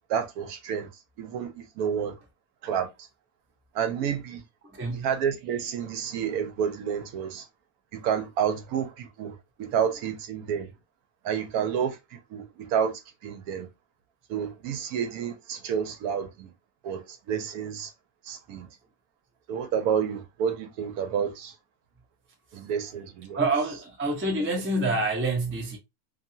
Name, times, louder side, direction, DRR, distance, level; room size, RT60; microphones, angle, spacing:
voice 1, 0.1-0.9 1.2-2.1 2.6-3.1 3.7-4.4 4.9-7.4 7.9-10.7 11.2-13.7 14.3-16.5 16.8-17.9 18.2-18.7 19.5-21.5 22.5-23.4, right 8 dB, 80° right, 1.1 m, -30 dB
voice 2, 4.6-5.1 23.3-25.8, right 2 dB, 15° right, 0.4 m, -27 dB
2.7 x 2.5 x 2.6 m
omnidirectional pair, 1.6 m